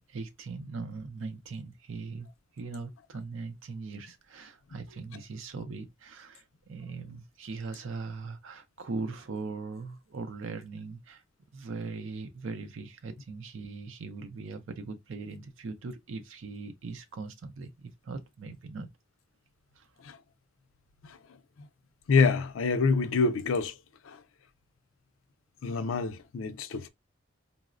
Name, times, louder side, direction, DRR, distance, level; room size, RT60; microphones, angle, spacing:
voice 1, 0.0-2.3 2.5-11.2 11.5-18.9 19.8-19.9, right 4 dB, 80° right, 0.5 m, -40 dB
voice 2, 22.1-23.7 24.0-24.2 25.6-26.9, left 4 dB, 90° left, 0.4 m, -26 dB
3.9 x 2.0 x 2.4 m
head